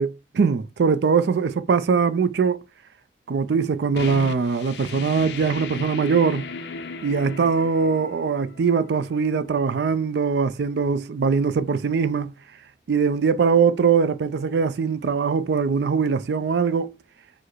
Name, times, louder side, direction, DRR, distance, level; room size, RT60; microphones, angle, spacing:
voice 1, 0.0-2.6 3.3-6.5 7.0-12.3 12.9-16.9, right 5 dB, 70° right, 0.4 m, -22 dB
sound 1, 4.0-9.4, left 4 dB, 70° left, 0.5 m, -36 dB
4.7 x 2.1 x 4.4 m
head